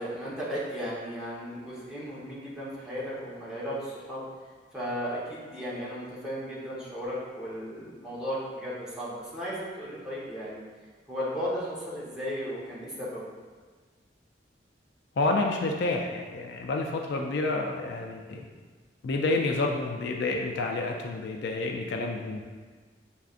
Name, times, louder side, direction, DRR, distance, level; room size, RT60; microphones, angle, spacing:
voice 1, 0.0-4.2 4.7-10.6 11.1-13.2, equal, 5° right, -9 dB, 1.0 m, -35 dB
voice 2, 15.2-18.5 19.0-22.4, left 2 dB, 60° left, 2 dB, 0.4 m, -29 dB
6.8 x 2.4 x 2.5 m, 1.5 s
head